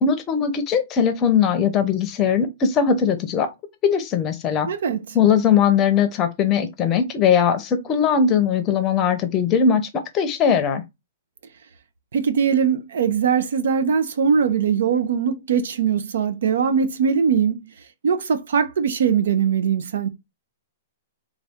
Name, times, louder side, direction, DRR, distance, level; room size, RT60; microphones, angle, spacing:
voice 1, 0.0-3.5 3.8-4.7 5.1-9.8 10.1-10.8, left 7 dB, 20° left, 0.6 m, -19 dB
voice 2, 4.6-5.0 12.1-17.6 18.0-20.1, right 7 dB, 75° right, 0.6 m, -21 dB
4.0 x 2.3 x 3.5 m
hypercardioid pair, 165°, 0 cm